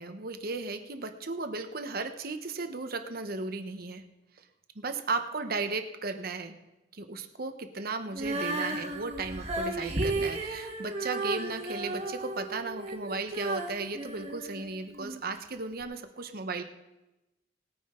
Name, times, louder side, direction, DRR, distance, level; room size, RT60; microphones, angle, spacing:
voice 1, 0.0-4.0 4.4-4.5 4.7-6.6 6.9-16.6, right 3 dB, 55° right, 7 dB, 1.0 m, -35 dB
Female singing, 8.1-15.2 15.8-15.9, right 2 dB, 35° right, 1.6 m, -34 dB
19.5 x 9.6 x 3.8 m, 1.0 s
head